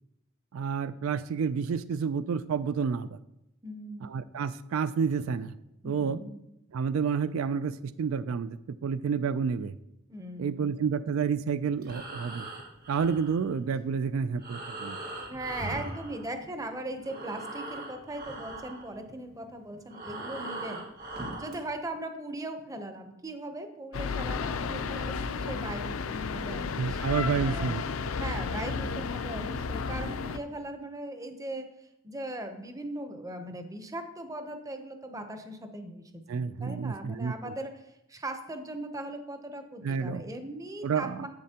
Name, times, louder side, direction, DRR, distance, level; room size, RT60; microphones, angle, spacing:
voice 1, 0.5-3.2 4.0-5.6 5.8-6.2 6.7-9.7 10.4-12.5 12.9-15.0 26.8-27.8 36.3-37.5 39.8-40.2 40.8-41.3, right 6 dB, 70° right, 14 dB, 0.3 m, -30 dB
voice 2, 3.6-4.2 5.8-6.4 10.1-10.8 15.3-20.8 21.3-27.8 28.2-31.7 32.0-37.7 38.1-41.3, right 1 dB, 15° right, 7 dB, 0.7 m, -39 dB
Breathing, 11.7-16.7 17.0-21.6, right 2 dB, 45° right, 1.7 m, -41 dB
Distant traffic in the morning Rome, 23.9-30.4, left 5 dB, 70° left, 0.5 m, -33 dB
10.5 x 7.5 x 2.9 m, 0.85 s
head